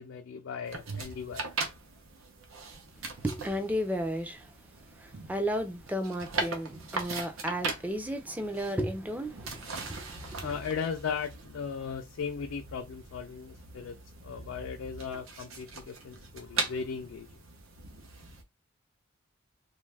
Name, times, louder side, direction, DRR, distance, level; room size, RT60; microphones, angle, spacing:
voice 1, 0.0-1.5 10.4-14.0 14.2-17.3, left 6 dB, 75° left, 0.4 m, -37 dB
sound 1, 0.6-18.4, right 3 dB, 90° right, 0.7 m, -40 dB
voice 2, 3.0-4.5 4.9-10.5, equal, 10° right, 0.4 m, -34 dB
2.6 x 2.4 x 3.2 m
head